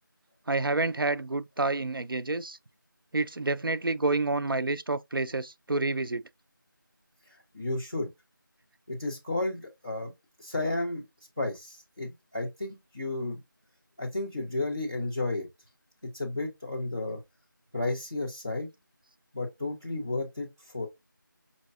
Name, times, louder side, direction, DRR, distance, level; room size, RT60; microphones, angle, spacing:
voice 1, 0.5-2.6 3.1-6.2, right 3 dB, 85° right, 0.4 m, -28 dB
voice 2, 7.5-8.1 8.9-10.1 10.4-11.0 11.4-13.4 14.0-15.5 16.1-17.2 17.7-18.7 19.3-20.9, left 2 dB, 10° right, 0.8 m, -32 dB
5.1 x 2.8 x 2.5 m
figure-of-eight pair, 170°, 11 cm